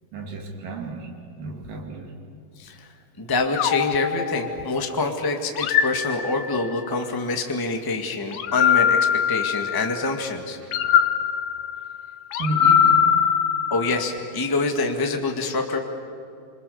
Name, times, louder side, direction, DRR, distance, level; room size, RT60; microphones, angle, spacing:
voice 1, 0.1-2.2 10.6-10.7 12.4-13.2, right 2 dB, 65° right, 2 dB, 4.2 m, -32 dB
voice 2, 2.6-2.9 3.2-10.6 13.7-15.8, left 3 dB, 15° left, 4 dB, 0.8 m, -26 dB
sound 1, 3.6-4.9 5.6-6.8 8.3-10.0 10.7-14.2, left 8 dB, 75° left, 1.6 m, -22 dB
27.5 x 26.5 x 7.0 m, 2.6 s
omnidirectional pair, 4.2 m